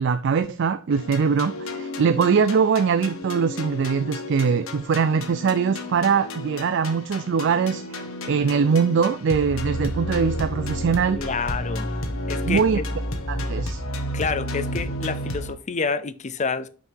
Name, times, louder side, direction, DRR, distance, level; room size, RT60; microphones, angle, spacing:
voice 1, 0.0-11.2 12.5-12.8 13.3-13.8, right 6 dB, 55° right, 0.4 m, -22 dB
sound 1, 0.9-15.5, left 1 dB, 70° left, 1.2 m, -31 dB
voice 2, 11.2-11.9 12.3-12.8 14.1-16.7, left 4 dB, 35° left, 0.5 m, -28 dB
6.2 x 5.4 x 4.6 m
head